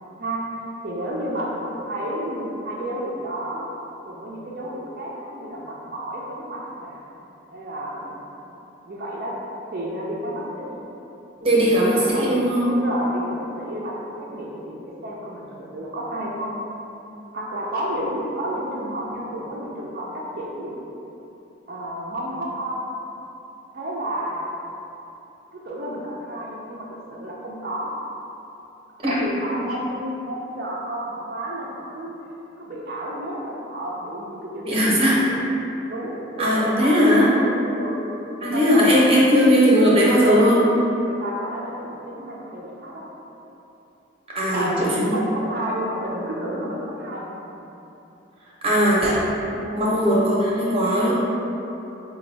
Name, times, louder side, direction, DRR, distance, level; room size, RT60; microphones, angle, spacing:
voice 1, 0.8-3.7 4.0-7.1 7.5-8.5 8.8-9.3 9.7-10.8 11.4-12.3 12.6-15.4 15.7-16.6 17.3-20.8 21.7-22.9 23.7-24.5 25.5-27.9 29.0-32.1 32.6-35.4 35.9-38.0 38.4-39.2 40.2-40.6 41.0-43.0 44.4-47.5 49.5-50.0, right 1 dB, 50° right, -5 dB, 0.5 m, -31 dB
voice 2, 11.4-12.7 29.0-29.1 34.6-35.2 36.4-37.3 38.4-40.6 44.3-45.4 48.6-49.1 49.8-51.1, equal, 30° right, -7 dB, 0.8 m, -18 dB
4.9 x 2.3 x 3.3 m, 3.0 s
head